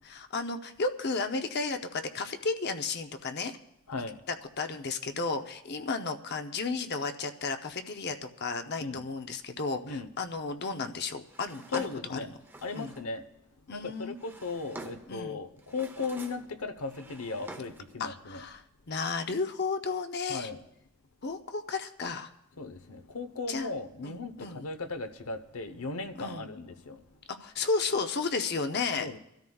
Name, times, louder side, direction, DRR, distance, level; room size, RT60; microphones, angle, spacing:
voice 1, 0.0-3.6 3.9-4.0 4.6-12.4 12.7-12.9 13.7-14.2 15.1-15.4 18.0-20.5 21.2-22.3 23.5-23.7 24.0-24.7 26.2-26.5 27.3-29.2, left 4 dB, 50° left, 0.7 m, -33 dB
voice 2, 3.9-4.2 8.8-9.0 9.8-10.1 11.7-12.3 12.6-13.3 13.7-18.4 20.3-20.6 22.6-27.0 29.0-29.2, left 3 dB, 85° left, 0.9 m, -37 dB
Drawer open or close, 11.3-13.1 13.9-15.2 15.6-16.5 16.8-17.9, right 2 dB, 10° right, 0.7 m, -47 dB
25.0 x 13.0 x 2.3 m
head